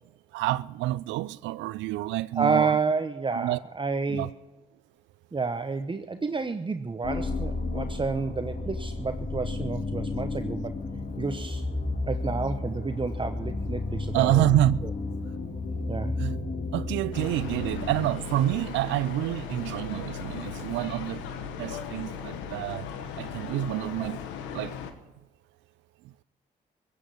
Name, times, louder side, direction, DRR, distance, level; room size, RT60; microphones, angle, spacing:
voice 1, 0.3-2.7 3.3-3.6 4.1-4.3 14.1-14.8 16.2-16.4 16.7-21.3 21.6-24.2 24.5-24.8, right 15 dB, 80° right, 0.4 m, -28 dB
voice 2, 2.4-4.3 5.3-10.8 11.2-11.6 12.1-14.6 14.8-14.9 15.9-16.2, right 4 dB, 25° right, 1.0 m, -30 dB
sound 1, 7.0-18.9, left 3 dB, 50° left, 2.3 m, -32 dB
sound 2, 17.1-24.9, left 7 dB, 85° left, 1.2 m, -37 dB
16.0 x 8.5 x 9.5 m
hypercardioid pair, 45°, 19 cm